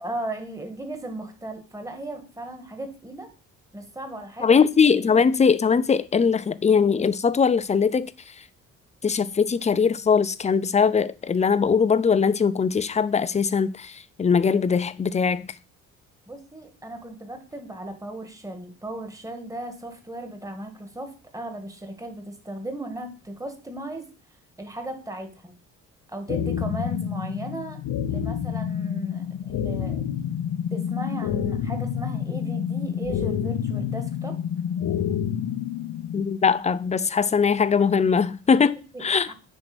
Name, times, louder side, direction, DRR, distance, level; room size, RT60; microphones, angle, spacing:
voice 1, 0.0-3.3 3.7-4.6 5.1-5.2 16.3-24.1 24.6-25.6 26.1-27.8 28.1-30.1 30.7-34.4 38.9-39.3, right 1 dB, 10° right, 1.8 m, -36 dB
voice 2, 4.4-8.1 9.0-15.5 36.1-38.8 39.0-39.3, left 6 dB, 25° left, 0.5 m, -21 dB
sound 1, 26.3-36.3, left 8 dB, 70° left, 0.9 m, -28 dB
9.6 x 3.3 x 6.1 m
cardioid pair, 90°, 30 cm